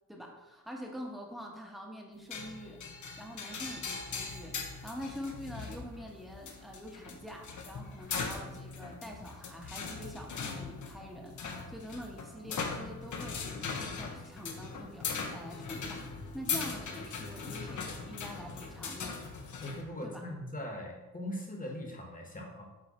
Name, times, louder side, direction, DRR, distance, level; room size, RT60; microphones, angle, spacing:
voice 1, 0.1-2.8 3.2-19.2 20.0-20.2, equal, ahead, 0 dB, 1.1 m, -45 dB
sound 1, 2.3-19.8, left 5 dB, 70° left, 1.0 m, -40 dB
voice 2, 19.6-22.7, left 1 dB, 25° left, 1 dB, 1.4 m, -40 dB
7.6 x 3.1 x 4.2 m, 1.1 s
cardioid pair, 85°, 32 cm